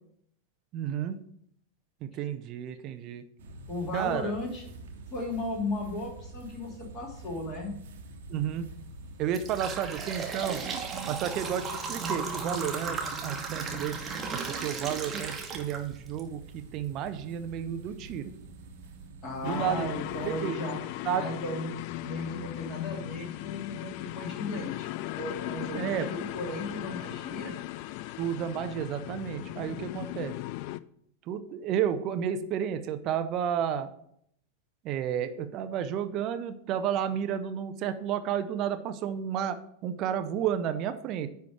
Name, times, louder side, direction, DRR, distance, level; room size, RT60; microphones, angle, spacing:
voice 1, 0.7-1.2 2.0-3.2 3.9-4.3 8.3-8.7 9.2-14.0 14.3-18.3 19.4-19.9 20.2-20.6 21.1-21.3 25.7-26.1 28.2-30.3 31.3-33.9 34.8-41.3, right 9 dB, 35° right, 9 dB, 0.6 m, -31 dB
sound 1, 3.4-20.4, right 2 dB, 60° right, 1.2 m, -47 dB
voice 2, 3.7-4.7 5.1-7.7 19.2-20.8 21.1-21.7 22.0-27.6, left 1 dB, 30° left, -2 dB, 2.7 m, -35 dB
sound 2, 8.4-8.6 9.1-16.2 16.7-16.8 17.6-17.7 18.2-18.3 18.8-19.0, right 4 dB, 20° right, 1.3 m, -35 dB
sound 3, 19.4-30.8, left 17 dB, 45° left, 0.3 m, -37 dB
9.8 x 3.5 x 6.0 m, 0.68 s
figure-of-eight pair, 90°, 0 cm